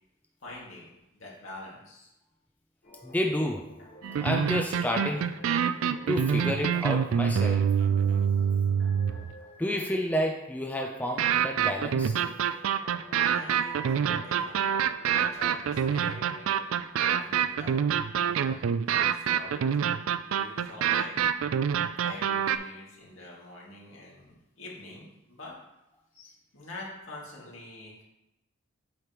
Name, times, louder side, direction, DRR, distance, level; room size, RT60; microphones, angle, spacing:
voice 1, 0.4-0.9 1.1-2.1 13.3-14.8 15.1-17.8 18.2-18.6 19.1-21.1 22.0-25.5 26.1-28.0, left 2 dB, 75° left, -4 dB, 2.0 m, -45 dB
sound 1, 2.8-16.8, left 1 dB, 45° left, 1.3 m, -51 dB
voice 2, 3.0-3.7 4.1-5.3 6.1-7.6 9.6-12.2 17.1-17.2, equal, 10° left, 1 dB, 0.4 m, -30 dB
sound 2, 4.0-9.3 11.2-22.6, right 8 dB, 80° right, 0.3 m, -26 dB
8.0 x 5.0 x 3.0 m, 0.89 s
head